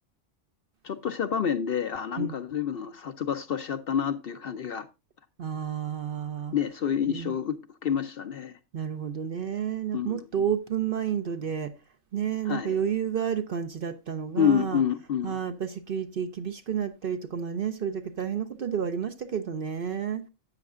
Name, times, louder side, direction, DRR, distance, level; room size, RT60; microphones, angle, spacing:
voice 1, 0.8-4.9 6.5-8.6 9.9-10.3 12.5-12.8 14.3-15.4, left 8 dB, 55° left, 0.7 m, -28 dB
voice 2, 5.4-6.6 7.1-7.3 8.7-11.7 12.1-14.8 15.2-20.2, right 8 dB, 55° right, 0.7 m, -30 dB
12.5 x 8.6 x 2.4 m
omnidirectional pair, 1.3 m